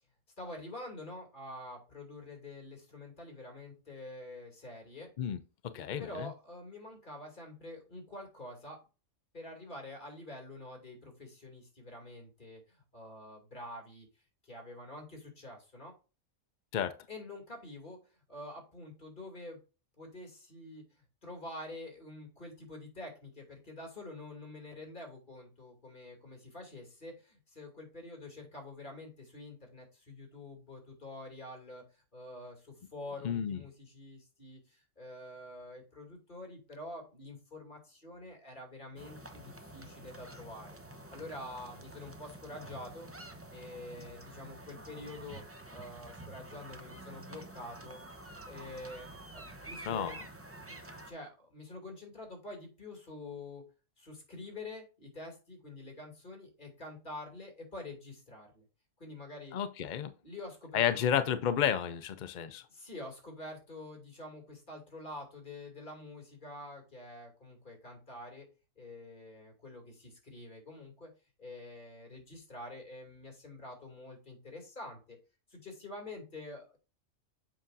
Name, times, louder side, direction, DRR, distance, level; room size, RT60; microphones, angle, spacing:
voice 1, 0.4-5.1 6.0-8.8 9.3-14.1 14.4-15.9 17.1-19.6 20.0-40.7 41.1-43.1 43.5-45.4 45.7-48.0 48.4-50.2 50.7-50.8 51.1-53.6 54.0-58.6 59.0-59.6 60.2-61.1 62.7-68.5 68.8-71.1 71.4-75.2 75.5-76.8, left 2 dB, 40° left, 2.6 m, -47 dB
voice 2, 5.6-6.3 16.7-16.9 33.2-33.6 49.9-50.2 59.5-60.1 60.7-62.6, left 9 dB, 60° left, 0.5 m, -31 dB
sound 1, 39.0-51.1, right 2 dB, 15° right, 0.5 m, -49 dB
7.6 x 5.5 x 2.6 m
omnidirectional pair, 1.3 m